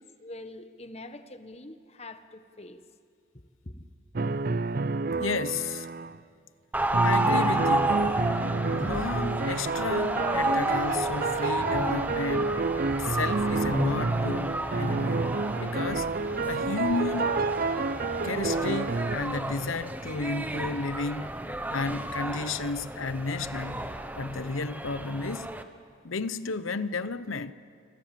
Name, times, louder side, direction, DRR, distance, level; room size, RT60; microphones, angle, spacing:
voice 1, 0.0-2.8 3.3-3.8, left 2 dB, 30° left, 1.3 m, -45 dB
sound 1, 4.1-6.2 6.9-19.2, right 3 dB, 45° right, 0.5 m, -29 dB
voice 2, 5.2-5.9 7.0-8.0 8.7-12.6 12.9-14.5 14.8-15.2 15.6-16.1 16.5-17.3 18.2-21.3 21.7-23.9 24.2-25.5 26.0-27.5, left 3 dB, 85° left, 0.9 m, -32 dB
sound 2, 6.7-25.6, right 1 dB, 10° right, 1.0 m, -31 dB
28.5 x 22.0 x 7.6 m
head